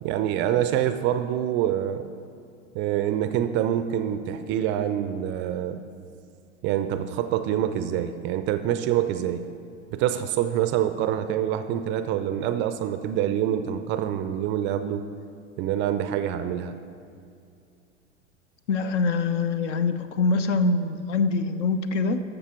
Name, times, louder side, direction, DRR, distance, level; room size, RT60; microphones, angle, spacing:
voice 1, 0.0-2.1 2.7-5.8 6.6-9.4 9.9-15.0 15.6-16.8, right 10 dB, 30° right, 10 dB, 0.4 m, -26 dB
voice 2, 18.7-22.2, left 3 dB, 65° left, 10 dB, 0.8 m, -24 dB
13.0 x 6.8 x 4.3 m, 2.5 s
figure-of-eight pair, 90°, 40 cm